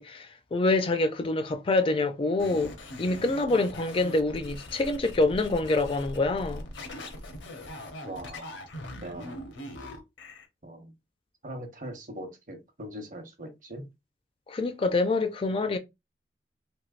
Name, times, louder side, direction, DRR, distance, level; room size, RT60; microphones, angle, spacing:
voice 1, 0.0-6.7 14.5-15.8, left 2 dB, 30° left, 0.3 m, -26 dB
sound 1, 2.4-10.4, left 1 dB, 90° left, 0.9 m, -41 dB
voice 2, 8.0-8.5 9.0-9.4 10.6-10.9 11.4-13.9, right 1 dB, 45° right, 0.8 m, -41 dB
3.2 x 3.2 x 2.4 m
head